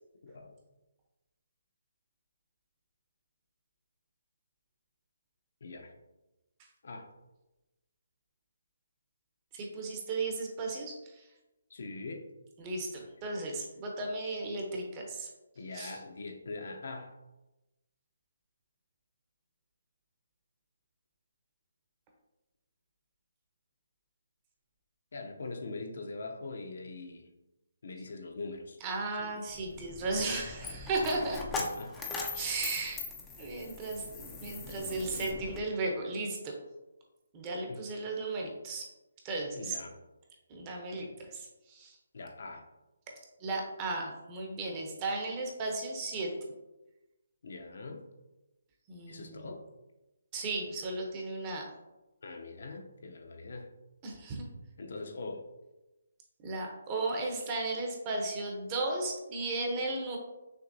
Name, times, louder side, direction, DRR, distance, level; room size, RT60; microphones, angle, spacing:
voice 1, 0.2-0.6 5.6-5.9 6.8-7.1 11.7-12.2 15.6-17.2 25.1-27.3 27.8-28.8 29.2-29.4 31.5-32.4 32.8-32.9 37.7-37.8 39.5-40.0 42.1-42.7 47.4-48.1 49.1-49.6 52.2-53.7 54.8-55.5, left 3 dB, 60° left, 4 dB, 0.6 m, -42 dB
voice 2, 9.5-11.2 12.6-15.3 15.7-15.9 28.8-31.4 32.3-33.0 33.4-36.5 37.3-38.9 39.2-39.8 40.5-41.9 43.4-46.3 48.9-49.5 50.3-51.6 54.0-54.5 56.4-60.2, right 2 dB, 20° right, 0 dB, 0.7 m, -35 dB
Coin (dropping), 29.5-35.6, left 3 dB, 10° left, 0.4 m, -40 dB
6.0 x 2.9 x 2.6 m, 1.0 s
hypercardioid pair, 165°, 0 cm